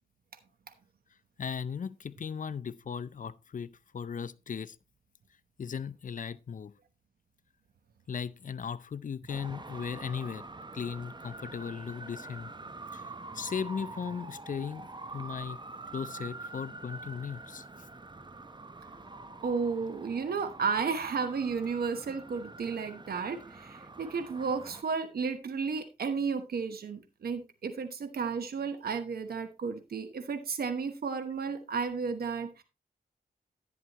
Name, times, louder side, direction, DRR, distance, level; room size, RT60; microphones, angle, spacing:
voice 1, 1.4-4.8 5.6-6.7 8.1-10.5 10.7-12.5 12.9-13.1 13.3-15.6 15.9-17.6, left 6 dB, 55° left, 0.6 m, -37 dB
Traffic noise roadway noise, 9.3-24.8, right 3 dB, 30° right, 0.9 m, -46 dB
voice 2, 19.4-32.6, right 5 dB, 80° right, 1.1 m, -33 dB
11.0 x 9.5 x 2.9 m
cardioid pair, 55°, 16 cm